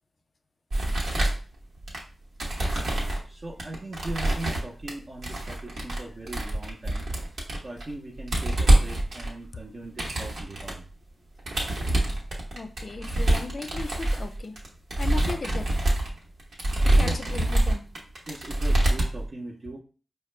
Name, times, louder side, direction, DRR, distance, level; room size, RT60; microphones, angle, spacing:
sound 1, 0.7-2.0 2.4-3.2 3.6-4.9 5.2-6.0 6.3-7.9 8.2-10.7 11.4-19.3, right 1 dB, 75° right, 1.0 m, -25 dB
voice 1, 3.2-7.1 7.6-10.8 16.9-17.2 18.3-19.8, right 1 dB, 50° right, -1 dB, 0.7 m, -39 dB
voice 2, 12.5-14.6 15.0-15.7 16.8-17.9, left 3 dB, 55° left, 9 dB, 0.4 m, -36 dB
4.7 x 2.2 x 3.2 m, 0.38 s
cardioid pair, 40°, 0 cm